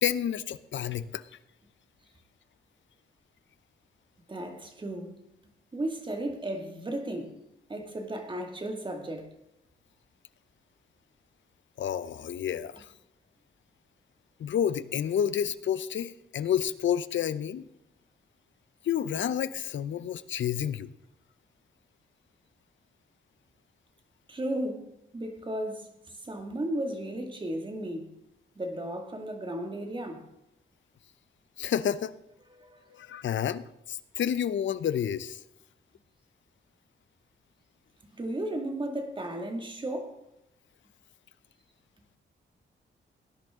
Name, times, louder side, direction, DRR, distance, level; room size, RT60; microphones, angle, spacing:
voice 1, 0.0-1.2 11.8-12.9 14.4-17.6 18.8-20.9 31.6-32.1 32.9-35.4, left 9 dB, 75° left, 0.7 m, -30 dB
voice 2, 4.3-5.2 5.7-7.4 7.7-9.3 24.3-24.9 25.1-28.1 28.6-30.3 32.5-32.9 38.1-40.2, right 1 dB, 25° right, 2.1 m, -35 dB
18.0 x 10.5 x 3.7 m
wide cardioid pair, 125°, 19 cm